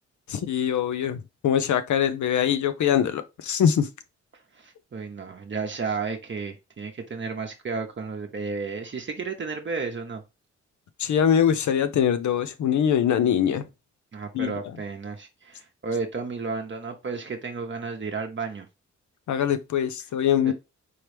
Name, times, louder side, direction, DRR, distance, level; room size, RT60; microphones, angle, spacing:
voice 1, 0.3-3.9 11.0-13.7 14.3-14.5 19.3-20.5, left 9 dB, 80° left, 0.6 m, -23 dB
voice 2, 4.5-10.2 14.1-18.7 20.4-20.5, right 4 dB, 40° right, 0.8 m, -32 dB
4.7 x 3.0 x 3.4 m
cardioid pair, 95°, 29 cm